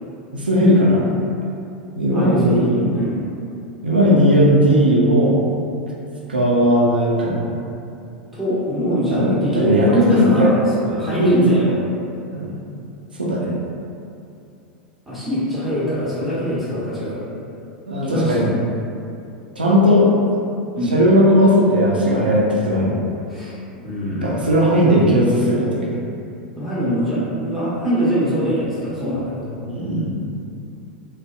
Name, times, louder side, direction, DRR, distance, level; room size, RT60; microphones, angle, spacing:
voice 1, 0.3-1.1 1.9-2.9 3.8-5.5 6.3-7.5 9.1-10.5 10.9-11.6 12.3-12.5 13.2-13.5 17.9-18.5 19.6-20.1 20.9-23.0 24.2-25.9 29.7-30.1, equal, 85° right, -4 dB, 0.5 m, -16 dB
voice 2, 2.1-3.2 8.3-11.8 15.1-17.3 18.0-18.6 20.7-21.0 23.3-23.6 23.8-24.5 26.6-29.7, equal, ahead, -12 dB, 1.1 m, -23 dB
2.6 x 2.3 x 2.2 m, 2.6 s
figure-of-eight pair, 90°, 5 cm